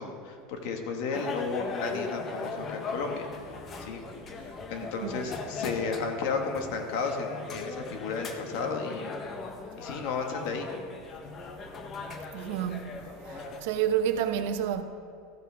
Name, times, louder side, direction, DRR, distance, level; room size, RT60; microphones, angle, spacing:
voice 1, 0.0-4.0 4.7-9.2 9.8-10.7, left 4 dB, 65° left, 1.6 m, -33 dB
sound 1, 1.1-13.6, left 3 dB, 30° left, 1.0 m, -39 dB
voice 2, 12.3-13.0 13.3-14.8, right 9 dB, 70° right, 0.9 m, -29 dB
14.0 x 12.5 x 3.5 m
supercardioid pair, 145°, 0 cm